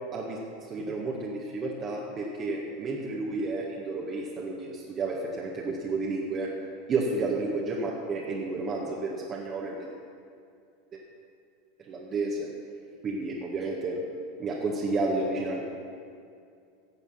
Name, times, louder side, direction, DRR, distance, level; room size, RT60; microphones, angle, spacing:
voice 1, 0.7-6.5 6.9-10.0 11.9-12.5 13.0-14.0 14.4-15.6, right 3 dB, 35° right, -3 dB, 1.8 m, -31 dB
15.5 x 8.0 x 5.9 m, 2.4 s
hypercardioid pair, 85°, 0 cm